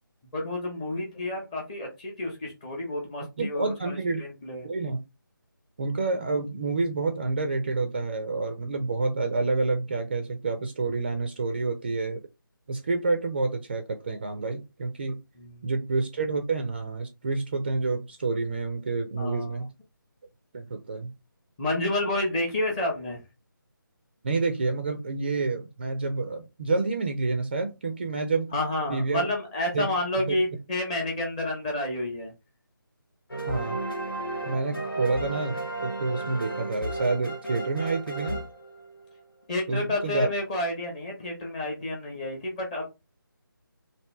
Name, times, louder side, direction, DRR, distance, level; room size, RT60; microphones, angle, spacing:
voice 1, 0.3-4.7 15.4-15.7 19.2-19.6 21.6-23.2 28.5-32.3 39.5-42.8, left 1 dB, 15° left, 0 dB, 0.8 m, -30 dB
voice 2, 3.4-4.2 4.6-5.0 5.8-12.2 12.7-15.2 15.6-19.7 20.5-21.1 24.2-28.6 28.9-29.3 29.7-29.9 30.2-30.4 33.5-33.8 34.4-38.5 39.7-40.3, right 3 dB, 30° right, 6 dB, 0.4 m, -28 dB
sound 1, 33.3-39.2, right 2 dB, 85° left, 1.2 m, -34 dB
3.1 x 2.6 x 3.1 m, 0.25 s
figure-of-eight pair, 160°, 12 cm